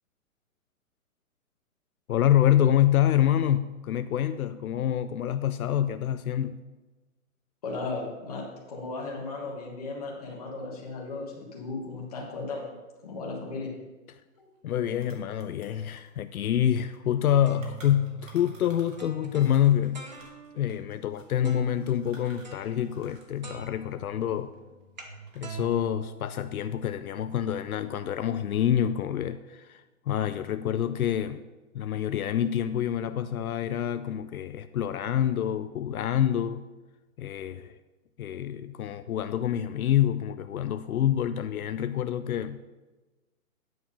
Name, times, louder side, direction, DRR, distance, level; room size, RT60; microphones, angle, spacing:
voice 1, 2.1-6.6 14.6-20.0 20.5-24.5 25.4-31.4 31.7-36.7 37.2-37.8 38.2-42.6, left 10 dB, 75° left, 0.5 m, -27 dB
voice 2, 7.6-12.7 13.0-13.7 14.4-14.5, left 3 dB, 25° left, 1.4 m, -36 dB
sound 1, 14.4-14.5 14.7-19.1 19.4-23.4 23.6-24.8 25.2-25.8, right 2 dB, 60° right, 2.3 m, -55 dB
sound 2, 17.1-20.7 21.4-21.9 22.4-23.2 23.4-26.9, right 5 dB, 30° right, 0.7 m, -44 dB
9.4 x 4.6 x 5.3 m
hypercardioid pair, 180°, 43 cm